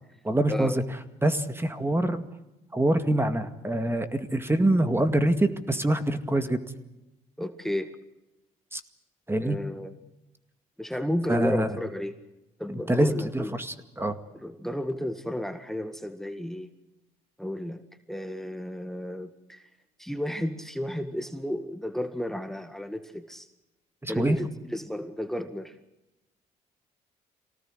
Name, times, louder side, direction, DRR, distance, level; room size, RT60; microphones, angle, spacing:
voice 1, 0.2-0.8 1.2-2.2 2.7-6.6 8.7-8.8 9.3-9.6 11.3-11.7 12.9-14.2 24.0-24.4, right 1 dB, 15° right, 9 dB, 2.1 m, -25 dB
voice 2, 7.4-7.9 9.4-10.0 10.8-12.2 12.6-13.6 14.3-16.7 17.4-17.8 18.1-19.7 20.0-23.5 24.1-25.8, left 1 dB, ahead, 9 dB, 1.9 m, -32 dB
24.5 x 18.0 x 8.1 m, 0.94 s
supercardioid pair, 60°, 17 cm